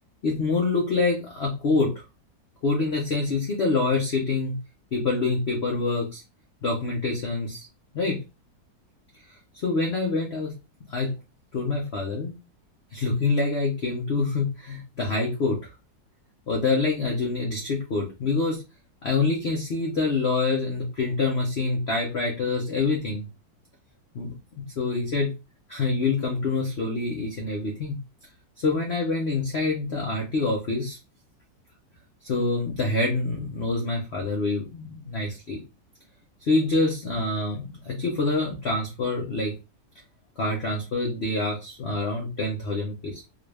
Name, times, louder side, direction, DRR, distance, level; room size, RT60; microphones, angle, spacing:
voice 1, 0.2-1.9 2.6-4.5 4.9-6.2 6.6-7.7 7.9-8.2 9.5-10.5 10.9-11.1 11.5-12.4 12.9-15.6 16.5-18.6 19.0-23.3 24.1-24.3 24.8-25.3 25.7-28.0 28.6-31.0 32.2-35.6 36.4-39.5 40.4-43.2, left 3 dB, 55° left, 0 dB, 0.7 m, -26 dB
3.7 x 2.5 x 3.3 m, 0.26 s
omnidirectional pair, 2.0 m